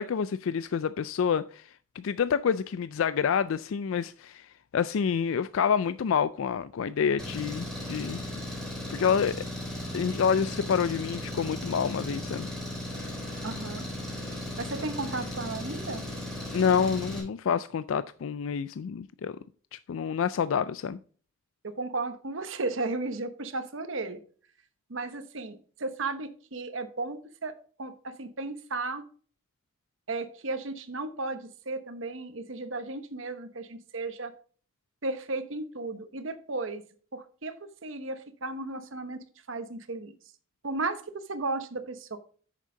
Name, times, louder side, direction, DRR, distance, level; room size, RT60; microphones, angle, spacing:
voice 1, 0.0-8.2 8.9-9.4 9.9-12.5 16.5-19.4 19.7-21.0, left 7 dB, 80° left, 0.4 m, -28 dB
Engine, 7.2-17.2, left 1 dB, ahead, 3.4 m, -36 dB
voice 2, 13.4-13.9 14.6-16.0 21.6-24.2 24.9-27.5 27.8-29.0 30.1-34.3 35.0-36.8 37.1-37.6 37.8-40.1 40.6-41.0 41.3-42.2, right 3 dB, 70° right, 1.0 m, -34 dB
8.5 x 6.6 x 3.8 m
head